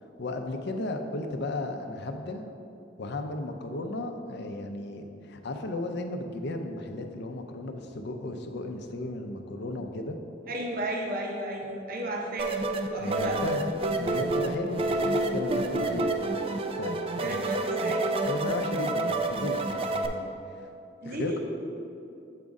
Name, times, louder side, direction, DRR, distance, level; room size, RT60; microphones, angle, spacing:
voice 1, 0.2-2.5 3.0-10.2 13.0-13.7 14.0-16.2 16.8-17.0 17.2-17.4 18.3-19.1 19.4-20.7 21.0-21.4, left 2 dB, 60° left, 5 dB, 0.5 m, -35 dB
voice 2, 10.5-12.6 12.9-13.5 17.2-18.0 21.0-21.4, right 1 dB, 50° right, 0 dB, 0.7 m, -33 dB
sound 1, 12.4-20.1, right 2 dB, 30° right, 0.4 m, -28 dB
7.4 x 3.6 x 5.2 m, 2.7 s
head